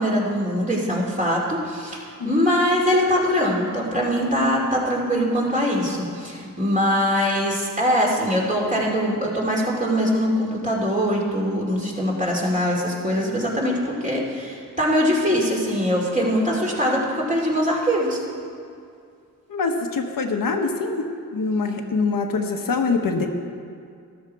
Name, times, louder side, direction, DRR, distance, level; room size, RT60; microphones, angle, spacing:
voice 1, 0.0-18.2, equal, 25° right, -3 dB, 2.8 m, -22 dB
voice 2, 19.5-21.1 21.3-23.3, left 4 dB, 80° left, 3 dB, 1.2 m, -24 dB
13.0 x 12.0 x 4.7 m, 2.3 s
wide cardioid pair, 100°, 33 cm